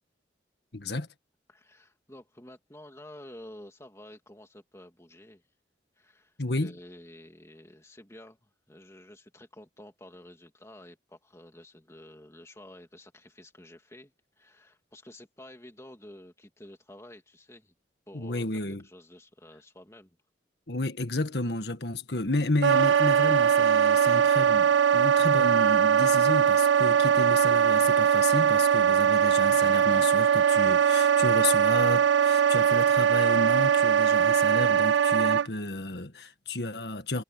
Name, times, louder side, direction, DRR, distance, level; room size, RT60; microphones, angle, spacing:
voice 1, 0.7-1.1 6.4-6.7 18.1-18.8 20.7-37.2, left 2 dB, 65° left, 1.8 m, -31 dB
voice 2, 1.5-5.4 6.0-17.7 18.1-18.4 18.8-20.2, left 1 dB, 15° left, 2.7 m, -50 dB
Wind instrument woodwind instrument, 22.6-35.5, right 8 dB, 80° right, 0.4 m, -21 dB
head